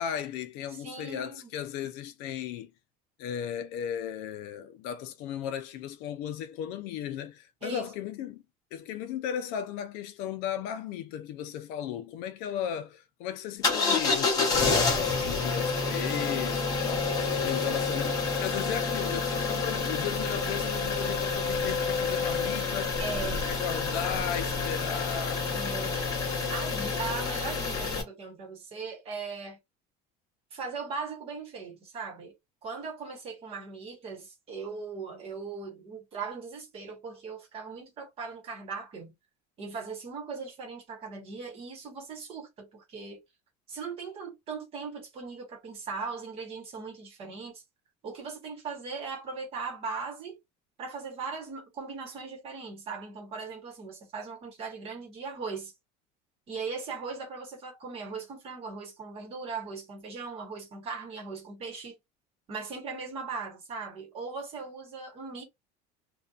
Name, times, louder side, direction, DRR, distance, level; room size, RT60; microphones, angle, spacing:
voice 1, 0.0-2.7 3.2-8.4 8.7-23.0 23.3-25.5, left 9 dB, 60° left, 0.5 m, -36 dB
voice 2, 0.7-1.5 7.6-7.8 23.0-23.6 25.5-29.6 30.5-32.3 32.6-39.1 39.6-43.2 43.7-47.6 48.0-50.4 50.8-55.7 56.5-61.9 62.5-65.4, right 4 dB, 30° right, 1.0 m, -39 dB
sound 1, 13.6-28.0, left 4 dB, 20° left, 0.8 m, -28 dB
2.6 x 2.2 x 2.3 m
cardioid pair, 170°, 18 cm